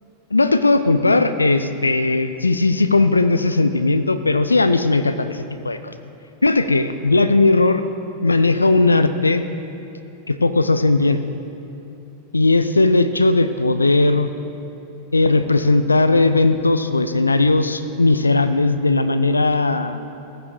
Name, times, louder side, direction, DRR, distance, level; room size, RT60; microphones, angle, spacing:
voice 1, 0.3-5.9 6.4-7.8 8.2-9.4 10.3-11.2 12.3-14.3 15.1-20.0, left 3 dB, 80° left, 12 dB, 0.4 m, -17 dB
15.5 x 9.9 x 3.8 m, 2.8 s
figure-of-eight pair, 90°, 0 cm